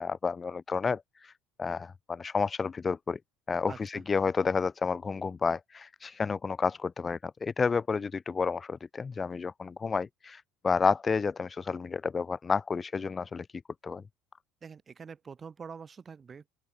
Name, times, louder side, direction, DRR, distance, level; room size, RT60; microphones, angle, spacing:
voice 1, 0.0-1.3 1.6-3.2 3.5-14.0, left 5 dB, 25° left, 0.7 m, -30 dB
voice 2, 3.7-4.0 14.6-16.5, right 6 dB, 30° right, 4.8 m, -45 dB
open air
figure-of-eight pair, 60°, 0 cm